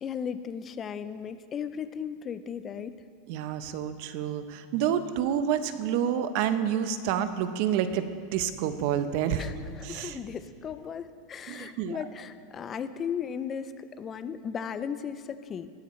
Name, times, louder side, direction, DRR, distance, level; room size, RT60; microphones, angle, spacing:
voice 1, 0.0-3.0 9.4-15.7, left 7 dB, 30° left, 12 dB, 0.5 m, -36 dB
voice 2, 3.3-9.5 9.8-10.2 11.5-12.0, right 9 dB, 60° right, 11 dB, 0.8 m, -28 dB
15.5 x 13.5 x 3.2 m, 2.2 s
supercardioid pair, 125°, 0 cm